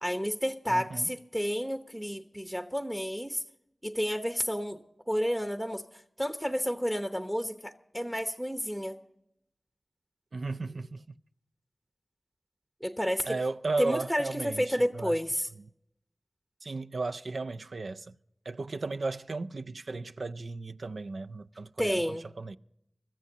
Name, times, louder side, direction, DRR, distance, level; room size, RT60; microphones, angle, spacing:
voice 1, 0.0-3.4 3.8-4.8 5.1-9.0 12.8-13.4 13.8-15.5 21.8-22.2, equal, 10° right, 0.9 m, -31 dB
voice 2, 0.7-1.1 10.3-11.2 13.3-15.2 15.6-15.7 16.6-18.1 18.5-22.6, right 3 dB, 80° right, 0.4 m, -35 dB
24.0 x 14.0 x 2.8 m
wide cardioid pair, 45°, 0 cm